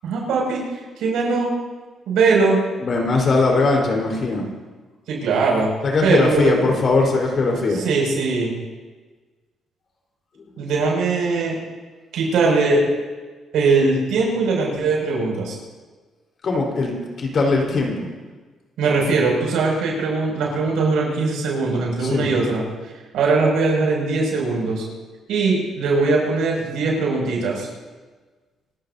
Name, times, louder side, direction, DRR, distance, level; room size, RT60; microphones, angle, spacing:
voice 1, 0.0-0.6 1.0-1.5 2.1-2.6 5.1-5.7 6.0-6.6 7.7-8.5 10.6-11.6 12.1-12.8 13.5-15.6 18.8-22.6 23.1-24.8 25.3-27.7, right 3 dB, 85° right, -2 dB, 6.6 m, -20 dB
voice 2, 2.8-4.5 5.8-7.8 16.4-18.1 22.0-22.3, left 3 dB, 50° left, 0 dB, 4.4 m, -20 dB
27.0 x 14.5 x 2.8 m, 1.3 s
cardioid pair, 90°, 0 cm